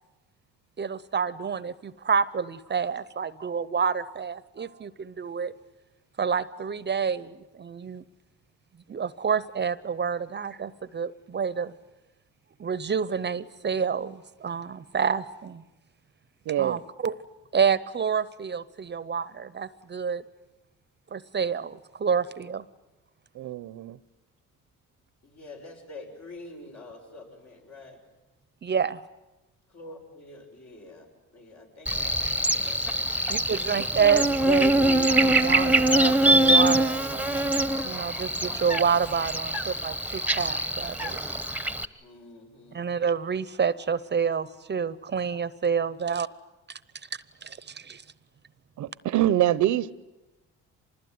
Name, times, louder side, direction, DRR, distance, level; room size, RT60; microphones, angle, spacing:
voice 1, 0.8-5.5 6.2-8.0 8.9-11.7 12.6-15.6 16.6-17.1 17.5-20.2 21.1-22.6 28.6-29.0 33.3-37.3 37.8-41.2 42.7-46.3 47.4-48.0, right 6 dB, 35° right, 0.8 m, -28 dB
voice 2, 16.5-16.8 23.4-24.0 46.0-46.2 48.8-49.9, right 13 dB, 75° right, 0.8 m, -25 dB
voice 3, 25.2-28.0 29.7-31.1 31.3-33.0 42.0-42.9, left 2 dB, 65° left, 7.0 m, -46 dB
Buzz, 31.9-41.9, right 1 dB, 5° right, 1.0 m, -24 dB
25.5 x 20.5 x 9.5 m
cardioid pair, 90°, 30 cm